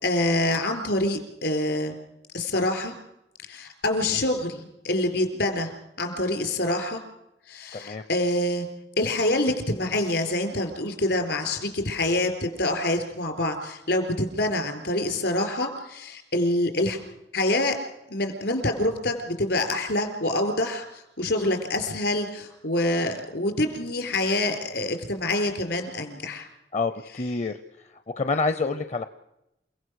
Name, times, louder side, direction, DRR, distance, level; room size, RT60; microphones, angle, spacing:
voice 1, 0.0-1.9 2.3-2.9 3.5-5.7 6.0-7.0 7.5-8.7 9.0-17.0 17.3-17.8 18.1-26.5, left 1 dB, 70° left, 6 dB, 4.0 m, -26 dB
voice 2, 7.7-8.0 26.7-27.6 28.1-29.1, left 3 dB, 40° left, 10 dB, 0.7 m, -27 dB
28.5 x 17.0 x 6.4 m, 0.88 s
head